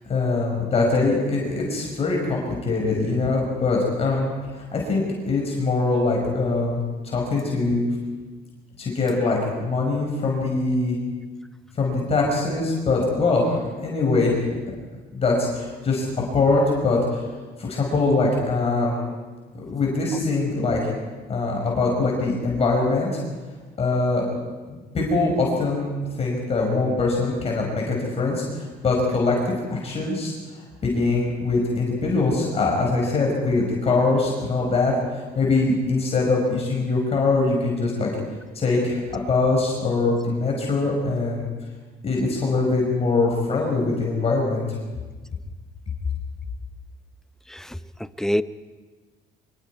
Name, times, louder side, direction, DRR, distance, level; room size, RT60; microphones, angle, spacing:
voice 1, 0.1-7.8 8.8-11.0 11.8-14.5 15.1-16.1 16.3-17.2 17.6-18.9 19.6-20.9 21.3-23.1 23.8-24.2 24.9-30.3 30.8-38.1 38.6-39.0 39.3-41.5 42.0-44.6, left 3 dB, 35° left, -1 dB, 5.2 m, -23 dB
voice 2, 47.5-48.4, equal, 5° left, 13 dB, 0.7 m, -26 dB
25.0 x 24.0 x 4.8 m, 1.3 s
cardioid pair, 110°, 17 cm